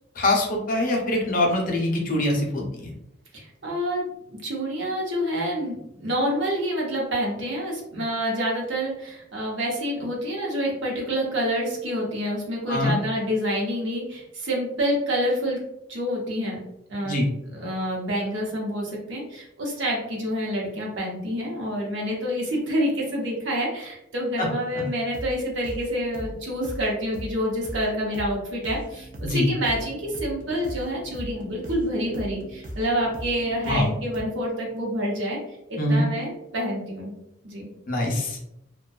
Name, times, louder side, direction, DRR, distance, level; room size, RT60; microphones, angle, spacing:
voice 1, 0.2-2.9 12.7-13.0 17.0-17.2 24.4-24.5 29.2-29.5 33.7-33.9 35.8-36.0 37.9-38.4, left 1 dB, 45° left, 0 dB, 0.5 m, -23 dB
voice 2, 3.3-15.6 15.9-16.6 16.9-17.2 17.5-35.4 35.7-37.1 37.4-37.7, equal, 65° right, -2 dB, 0.8 m, -27 dB
sound 1, 25.1-25.4 25.6-25.9 26.1-26.4 26.6-26.9 27.1-27.4 27.6-27.9 28.1-28.4 28.6-34.2, equal, 40° right, 0.4 m, -38 dB
2.6 x 2.2 x 2.2 m, 0.81 s
head